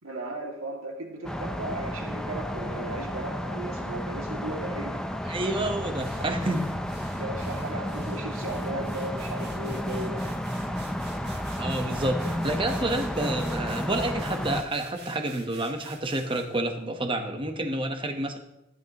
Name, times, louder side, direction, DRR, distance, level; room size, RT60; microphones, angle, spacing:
voice 1, 0.0-5.0 7.2-10.3, right 2 dB, 75° right, 0 dB, 2.3 m, -36 dB
sound 1, 1.2-14.6, equal, 5° left, 0.5 m, -32 dB
voice 2, 5.3-6.7 11.6-18.4, right 1 dB, 25° right, 5 dB, 1.0 m, -29 dB
sound 2, 6.0-16.6, right 4 dB, 50° right, 2.0 m, -49 dB
15.0 x 10.5 x 3.0 m, 0.91 s
head